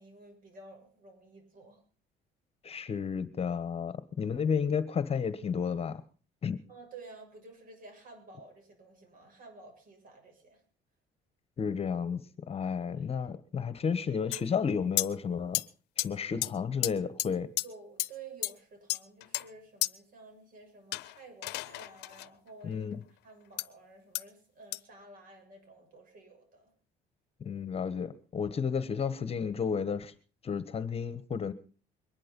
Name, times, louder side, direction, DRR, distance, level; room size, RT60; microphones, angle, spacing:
voice 1, 0.0-1.8 6.7-10.6 12.8-13.3 17.6-22.8 23.2-26.7, right 3 dB, 55° right, 7.2 m, -52 dB
voice 2, 2.6-6.0 6.4-6.6 11.6-12.2 12.5-15.6 16.0-17.5 22.6-23.0 27.4-30.1 30.4-31.5, left 6 dB, 35° left, 1.3 m, -32 dB
sound 1, 14.3-14.4 15.0-15.1 15.5-15.7 16.0-16.1 16.4-16.5 16.8-16.9 17.2-17.3 17.6-17.7 18.0-18.1 18.4-18.5 18.9-19.5 19.8-19.9 20.9-22.3 23.6-23.7 24.2-24.3 24.7-24.8, left 20 dB, 85° left, 0.7 m, -32 dB
22.5 x 11.0 x 5.4 m
cardioid pair, 110°, 17 cm